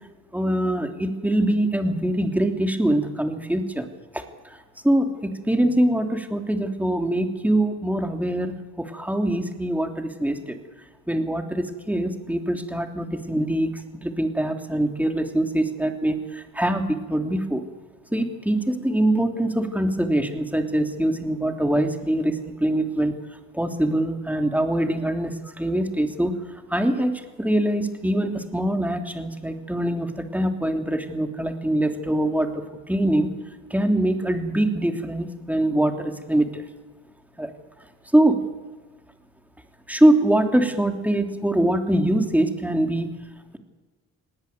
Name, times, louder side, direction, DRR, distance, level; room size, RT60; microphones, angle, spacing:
voice 1, 0.3-3.9 4.1-10.6 11.1-17.6 18.1-23.2 23.5-33.3 33.7-36.6 37.4-37.5 38.1-38.5 39.9-43.1, right 1 dB, 5° right, 5 dB, 3.1 m, -23 dB
19.0 x 18.5 x 9.4 m, 1.3 s
hypercardioid pair, 45°, 36 cm